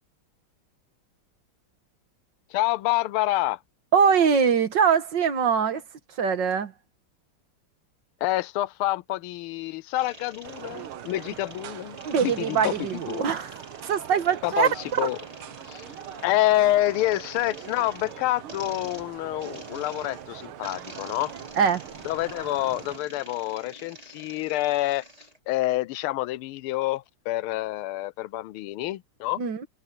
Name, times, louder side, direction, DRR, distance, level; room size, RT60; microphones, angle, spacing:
voice 1, 2.5-3.6 8.2-13.3 14.4-15.2 15.7-15.8 16.2-21.3 22.0-25.0 25.5-29.4, left 16 dB, 90° left, 1.5 m, -27 dB
voice 2, 3.9-5.8 6.2-6.7 12.1-13.6 13.9-15.1 21.6-21.8 29.4-29.7, right 6 dB, 60° right, 2.0 m, -23 dB
sound 1, 10.0-25.4, equal, 15° right, 3.6 m, -47 dB
sound 2, 10.4-23.0, right 10 dB, 80° right, 1.9 m, -42 dB
omnidirectional pair, 2.3 m